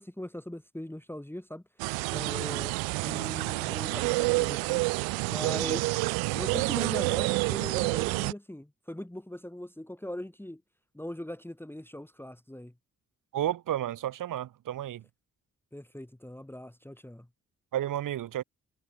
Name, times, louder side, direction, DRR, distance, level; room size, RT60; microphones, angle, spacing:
voice 1, 0.0-1.6 2.1-2.7 3.0-5.9 6.3-10.6 10.9-12.7 15.7-17.3, left 1 dB, 5° left, 1.9 m, -40 dB
sound 1, 1.8-8.3, right 31 dB, 90° right, 1.1 m, -28 dB
voice 2, 13.3-15.0 17.7-18.4, right 12 dB, 65° right, 1.0 m, -32 dB
hypercardioid pair, 40°, 35 cm